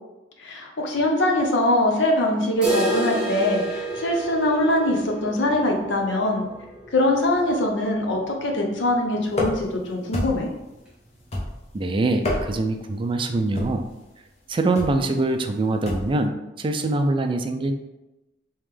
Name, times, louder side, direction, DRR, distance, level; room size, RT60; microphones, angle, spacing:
voice 1, 0.4-6.4 6.9-10.5, left 1 dB, 75° left, 1 dB, 0.7 m, -22 dB
sound 1, 2.6-8.4 8.7-8.8 9.2-9.3 9.8-9.9 10.7-10.8, right 1 dB, 5° right, 0.9 m, -30 dB
sound 2, 9.3-9.8 10.1-10.6 11.3-11.8 12.1-12.8 13.5-13.9 14.8-15.0 15.9-16.2, left 1 dB, 35° left, 0.8 m, -28 dB
voice 2, 11.7-13.8 14.5-17.7, right 2 dB, 30° right, 6 dB, 0.3 m, -24 dB
3.6 x 3.0 x 3.3 m, 1.0 s
head